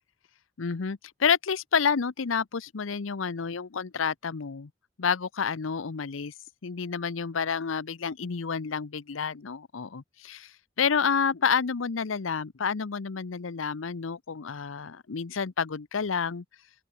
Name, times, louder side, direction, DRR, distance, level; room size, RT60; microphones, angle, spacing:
voice 1, 0.6-4.7 5.0-6.3 6.6-10.5 10.8-16.4, left 6 dB, 85° left, 0.7 m, -29 dB
open air
head